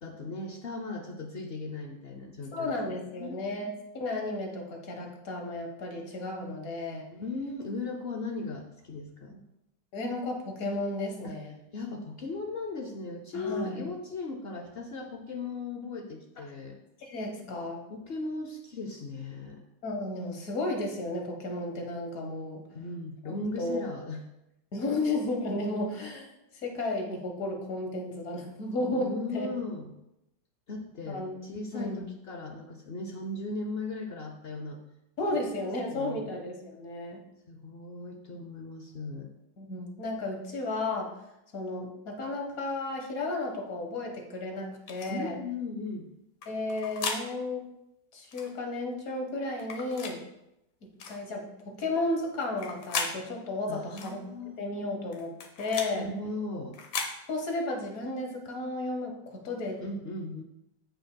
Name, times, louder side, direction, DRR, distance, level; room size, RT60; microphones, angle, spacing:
voice 1, 0.0-2.7 3.2-3.4 7.1-9.4 11.2-11.3 11.7-16.8 17.9-19.6 22.7-24.2 28.9-29.9 30.7-34.8 35.9-36.3 37.5-39.3 45.1-46.1 53.7-54.6 55.9-56.8 59.8-60.4, left 3 dB, 90° left, 3 dB, 0.5 m, -37 dB
voice 2, 2.5-7.1 9.9-11.5 13.3-13.8 17.0-17.8 19.8-22.6 23.6-23.9 24.7-26.3 26.6-29.5 31.1-32.1 35.2-37.2 39.6-41.1 41.5-45.4 46.5-47.7 48.1-50.2 51.1-54.2 54.6-56.1 57.3-59.8, left 2 dB, 50° left, 2 dB, 1.7 m, -33 dB
sound 1, 44.9-45.1 46.4-47.2 48.3-48.5 49.6-50.2 51.0-51.2 52.4-53.1 54.0-54.2 55.1-55.9 56.7-57.1, left 4 dB, 70° left, 1.6 m, -35 dB
15.5 x 5.2 x 2.2 m, 0.87 s
omnidirectional pair, 2.0 m